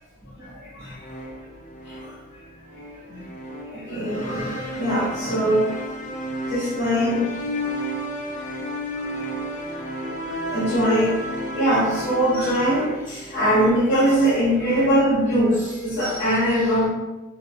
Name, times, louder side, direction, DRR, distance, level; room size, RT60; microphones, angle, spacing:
sound 1, 1.0-14.9, equal, 40° left, 0.3 m, -32 dB
voice 1, 3.7-5.7 6.5-7.3 10.5-11.1 11.5-16.9, equal, 60° left, -11 dB, 1.3 m, -21 dB
3.6 x 2.0 x 2.3 m, 1.1 s
head